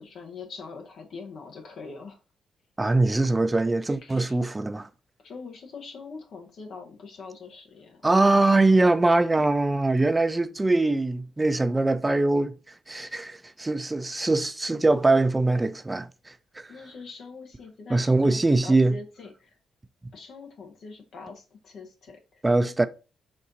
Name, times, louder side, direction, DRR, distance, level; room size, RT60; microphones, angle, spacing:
voice 1, 0.0-2.2 4.0-4.4 5.2-8.1 16.7-19.5 20.1-22.4, left 4 dB, 65° left, 0.9 m, -43 dB
voice 2, 2.8-4.9 8.0-16.7 17.9-19.0 22.4-22.9, right 2 dB, 20° right, 0.4 m, -22 dB
4.1 x 2.6 x 3.9 m
cardioid pair, 70°, 0 cm